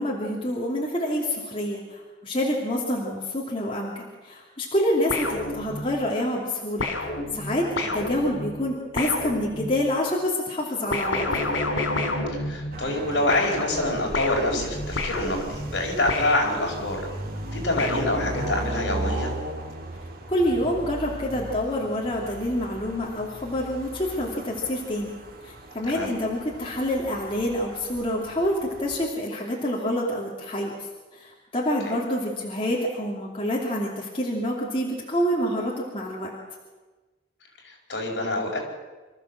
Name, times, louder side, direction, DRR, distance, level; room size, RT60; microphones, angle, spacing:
voice 1, 0.0-7.7 7.9-11.2 20.3-25.1 25.4-30.7 31.1-36.3, left 1 dB, 30° left, -3 dB, 2.8 m, -27 dB
sound 1, 5.1-6.1 6.8-10.0 10.9-13.0 13.3-17.0 17.8-18.8, left 2 dB, 85° left, 3.3 m, -30 dB
voice 2, 12.3-17.0 17.5-19.3 25.9-26.1 31.8-31.9 37.6-38.6, left 1 dB, 65° left, 0 dB, 5.1 m, -26 dB
sound 2, 12.7-29.0, right 1 dB, 50° right, 1.9 m, -37 dB
25.5 x 14.0 x 7.5 m, 1.3 s
head